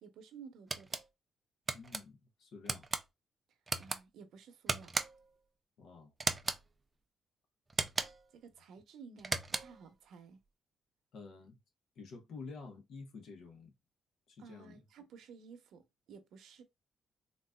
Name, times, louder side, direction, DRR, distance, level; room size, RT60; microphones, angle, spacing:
voice 1, 0.0-1.0 3.8-4.9 8.3-10.4 14.4-15.8 16.1-16.6, right 5 dB, 70° right, 0.7 m, -54 dB
sound 1, 0.7-1.0 1.7-2.0 2.7-3.0 3.7-4.0 4.7-5.3 6.2-6.6 7.7-8.3 9.2-9.8, right 3 dB, 20° right, 0.4 m, -36 dB
voice 2, 1.7-2.9 5.8-6.1 11.1-11.6 12.0-13.7 14.3-14.8, left 4 dB, 65° left, 0.9 m, -50 dB
3.8 x 2.4 x 2.2 m
cardioid pair, 145°, 0 cm